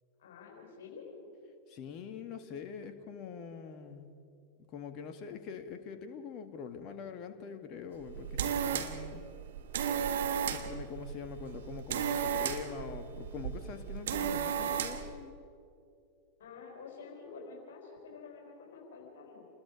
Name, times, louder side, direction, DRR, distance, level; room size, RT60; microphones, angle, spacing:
voice 1, 0.2-1.3 16.4-19.5, left 4 dB, 60° left, -1 dB, 4.8 m, -49 dB
voice 2, 1.7-4.1 4.7-9.2 10.5-15.4, left 6 dB, 40° left, 7 dB, 1.9 m, -44 dB
sound 1, 8.0-15.2, right 8 dB, 60° right, 1.4 m, -34 dB
28.5 x 20.5 x 5.1 m, 2.5 s
figure-of-eight pair, 90°, 0 cm